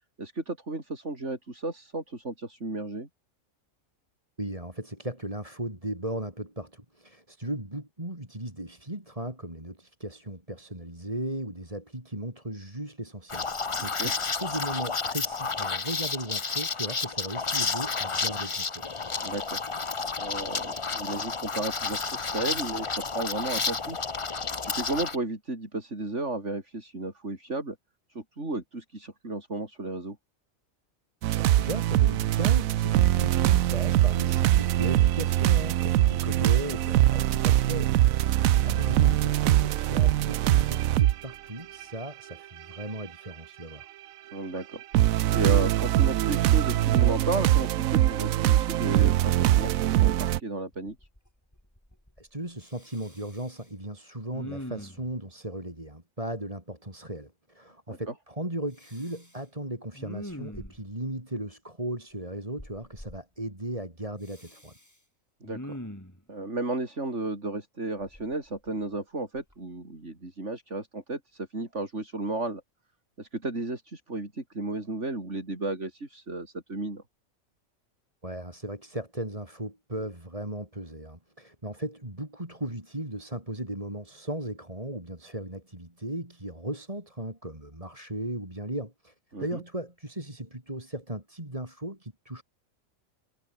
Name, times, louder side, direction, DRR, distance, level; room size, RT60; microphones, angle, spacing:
voice 1, 0.2-3.1 13.8-14.1 19.2-19.6 20.2-24.0 24.6-27.8 28.1-30.2 39.0-39.2 44.3-44.8 45.3-50.9 57.9-58.0 65.4-65.7 66.3-72.6 73.2-77.0 89.3-89.6, right 2 dB, 60° right, 5.0 m, -33 dB
voice 2, 4.4-13.5 13.8-18.9 31.5-37.9 38.5-43.9 52.2-64.7 78.2-92.4, right 1 dB, 25° right, 4.9 m, -37 dB
Liquid, 13.3-25.2, left 4 dB, 25° left, 0.8 m, -31 dB
sound 1, 31.2-41.1 41.8-41.9 42.8-42.9 44.9-50.4, right 13 dB, 80° right, 1.1 m, -22 dB
Respiratory sounds, 50.7-51.3 51.5-52.3 52.6-53.7 54.3-55.1 58.7-59.4 59.9-61.0 62.6-63.2 64.2-64.9 65.4-66.2 68.0-68.9 69.4-69.5, equal, 10° left, 5.3 m, -43 dB
omnidirectional pair, 1.4 m